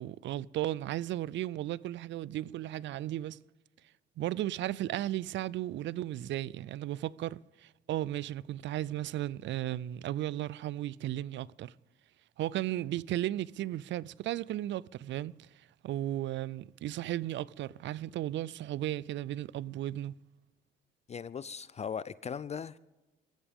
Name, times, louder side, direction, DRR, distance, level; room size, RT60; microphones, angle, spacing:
voice 1, 0.0-3.4 4.2-11.7 12.4-20.1, right 14 dB, 65° right, 0.4 m, -35 dB
voice 2, 21.1-22.8, left 7 dB, 35° left, 0.4 m, -38 dB
22.0 x 13.5 x 3.6 m
cardioid pair, 90°, 20 cm